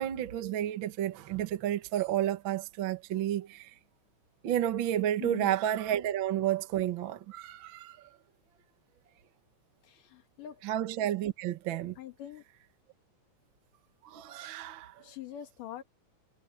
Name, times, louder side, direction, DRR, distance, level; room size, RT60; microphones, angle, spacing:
voice 1, 0.0-3.7 4.4-8.1 10.6-12.0 14.0-15.0, right 11 dB, 55° right, 1.4 m, -31 dB
voice 2, 5.2-5.5 9.8-10.6 12.0-12.4 15.0-15.8, left 12 dB, 85° left, 3.3 m, -43 dB
omnidirectional pair, 3.7 m